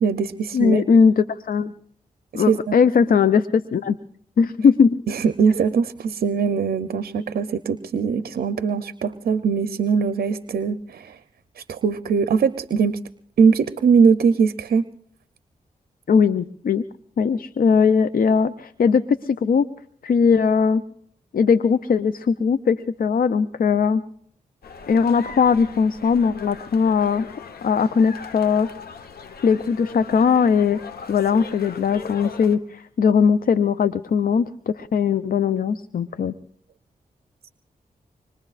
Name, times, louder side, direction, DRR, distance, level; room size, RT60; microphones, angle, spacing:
voice 1, 0.0-0.8 2.3-2.8 5.1-11.2 11.6-13.0 13.4-14.8, right 6 dB, 80° right, 12 dB, 0.6 m, -21 dB
voice 2, 0.5-1.7 2.3-4.0 4.4-5.0 16.1-16.8 17.2-19.7 20.0-20.8 21.3-24.0 24.9-27.2 27.6-28.7 29.4-30.8 31.1-36.3, left 6 dB, 70° left, 13 dB, 0.6 m, -19 dB
sound 1, 24.6-32.6, left 5 dB, 90° left, 1.0 m, -39 dB
25.5 x 22.0 x 2.4 m, 0.64 s
cardioid pair, 60°, 16 cm